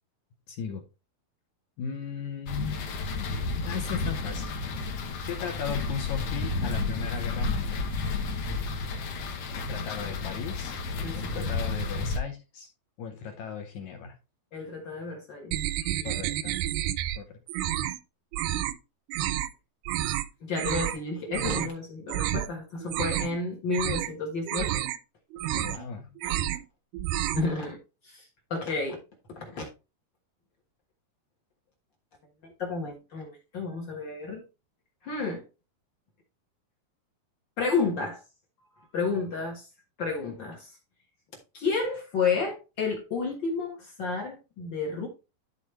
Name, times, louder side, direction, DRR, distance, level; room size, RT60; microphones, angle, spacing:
voice 1, 0.5-0.8 1.8-2.8 3.6-4.4 5.2-7.7 9.5-10.8 11.2-12.7 13.0-14.2 16.0-16.6 17.2-17.4 25.5-26.2, left 7 dB, 75° left, 1.8 m, -37 dB
sound 1, 2.5-12.2, left 3 dB, 90° left, 1.3 m, -31 dB
voice 2, 11.0-11.5 14.5-15.5 15.8-16.2 20.4-24.8 25.4-25.6 26.2-26.3 27.3-27.8 28.0-28.2 28.5-29.0 29.3-29.7 32.4-34.4 35.0-35.4 37.6-38.2 38.8-39.7 40.0-40.7 41.5-45.1, left 4 dB, 60° left, 1.2 m, -31 dB
sound 2, 15.5-17.2 17.5-18.0 18.3-18.8 19.1-19.5 19.9-20.3 20.6-21.0 21.3-21.7 22.1-22.5 22.8-23.4 23.7-24.1 24.5-25.0 25.3-25.9 26.2-26.7 26.9-27.5, right 13 dB, 85° right, 2.5 m, -30 dB
12.5 x 4.2 x 3.1 m
omnidirectional pair, 4.4 m